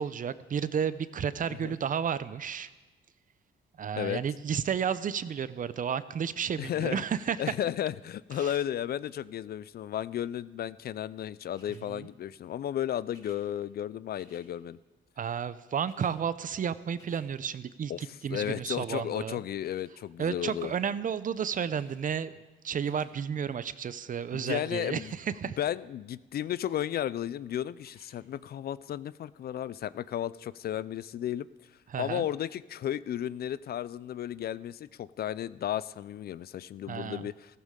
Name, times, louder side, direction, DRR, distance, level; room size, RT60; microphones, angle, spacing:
voice 1, 0.0-2.7 3.8-7.5 8.4-8.6 11.7-12.1 15.2-19.4 20.2-22.3 22.6-25.6 31.9-32.3 36.9-37.3, right 7 dB, 45° right, 15 dB, 0.6 m, -32 dB
voice 2, 6.6-7.0 7.4-14.8 17.9-18.0 18.3-20.7 24.3-25.1 25.6-31.5 32.0-37.6, left 11 dB, 50° left, 18 dB, 0.4 m, -34 dB
sound 1, 11.5-11.8 13.0-13.4 14.1-14.5 15.4-15.5 15.7-16.2 16.5-17.3 18.3-18.6 19.6-19.9 20.6-20.9 21.7-22.0 22.6-23.1 24.8-25.2 26.6-26.9 27.7-28.1 28.8-28.9, left 1 dB, 20° left, 4.5 m, -61 dB
15.5 x 14.0 x 3.8 m, 1.2 s
cardioid pair, 90°, 20 cm